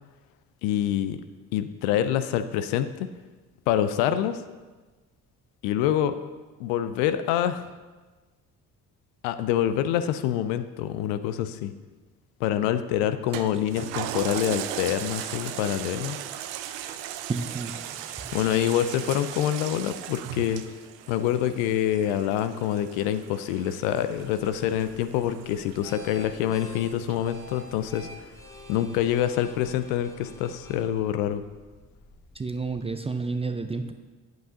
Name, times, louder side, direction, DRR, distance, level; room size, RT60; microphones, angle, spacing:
voice 1, 0.6-1.2 1.5-3.1 3.7-4.4 5.6-6.2 6.6-7.6 9.2-11.7 12.4-16.2 18.3-20.6 21.1-28.1 28.7-31.4, left 11 dB, 70° left, 11 dB, 0.6 m, -26 dB
Toilet flush, 13.3-28.1 28.6-28.7, right 11 dB, 65° right, 0.6 m, -38 dB
voice 2, 17.3-18.3 32.3-33.9, right 4 dB, 15° right, 8 dB, 0.4 m, -31 dB
sound 1, 24.1-32.9, left 2 dB, 5° left, 1.1 m, -48 dB
9.1 x 7.7 x 2.7 m, 1.3 s
figure-of-eight pair, 45°, 47 cm